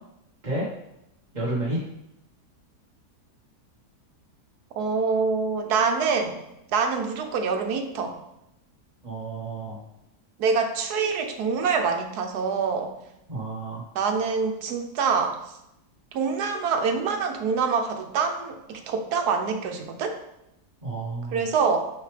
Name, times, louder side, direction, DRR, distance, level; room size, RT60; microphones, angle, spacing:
voice 1, 1.3-1.8 9.0-9.8 13.3-13.8 20.8-21.4, right 2 dB, 30° right, -7 dB, 1.3 m, -30 dB
voice 2, 4.8-6.4 6.7-8.1 10.4-12.9 13.9-15.4 16.1-20.2 21.3-21.8, right 5 dB, 75° right, 5 dB, 1.4 m, -25 dB
6.5 x 5.8 x 3.3 m, 0.83 s
omnidirectional pair, 1.7 m